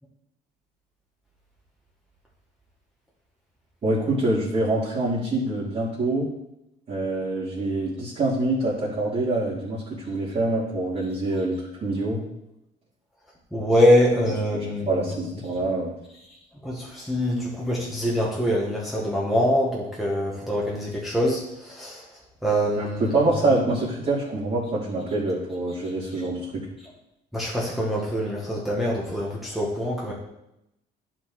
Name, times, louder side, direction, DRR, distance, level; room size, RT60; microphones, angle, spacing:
voice 1, 3.8-6.3 6.9-12.2 14.5-15.9 22.8-26.6, right 2 dB, 40° right, -11 dB, 3.0 m, -25 dB
voice 2, 13.5-15.1 16.6-22.0 22.4-23.2 27.3-30.1, equal, ahead, -5 dB, 1.7 m, -24 dB
11.0 x 4.6 x 3.8 m, 0.84 s
cardioid pair, 110°, 17 cm